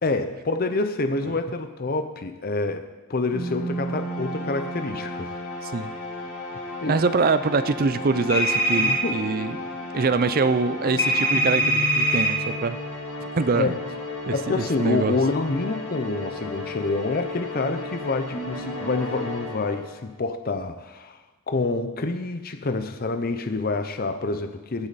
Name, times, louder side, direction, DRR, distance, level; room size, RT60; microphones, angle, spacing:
voice 1, 0.0-5.3 6.8-7.0 8.8-9.1 13.6-13.8 14.3-24.9, left 3 dB, 40° left, 8 dB, 0.7 m, -27 dB
sound 1, 3.3-20.1, left 1 dB, 75° left, 4.0 m, -34 dB
voice 2, 5.6-5.9 6.9-9.6 9.9-12.8 13.4-13.7 14.3-15.2, right 4 dB, 40° right, 13 dB, 0.5 m, -24 dB
sound 2, 8.3-9.0 11.0-12.3, right 1 dB, 15° left, 2.3 m, -22 dB
16.5 x 8.7 x 4.1 m, 1.2 s
head